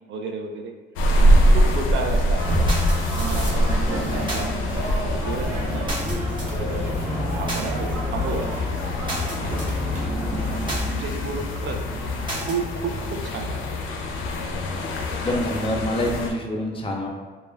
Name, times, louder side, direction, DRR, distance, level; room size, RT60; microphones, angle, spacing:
voice 1, 0.1-0.7 1.2-2.7 3.1-5.9 6.5-6.9 7.3-8.5 9.3-10.1 10.9-11.8 12.4-13.8 15.3-15.4, right 4 dB, 70° right, 2 dB, 0.4 m, -32 dB
sound 1, 1.0-16.3, equal, 85° left, 0.4 m, -24 dB
sound 2, 2.4-12.5, equal, 25° right, 1.0 m, -32 dB
sound 3, 3.1-10.8, left 1 dB, 40° right, 1.0 m, -30 dB
voice 2, 15.1-17.1, left 1 dB, 25° left, 0 dB, 0.5 m, -26 dB
2.2 x 2.1 x 3.3 m, 1.4 s
cardioid pair, 90°, 20 cm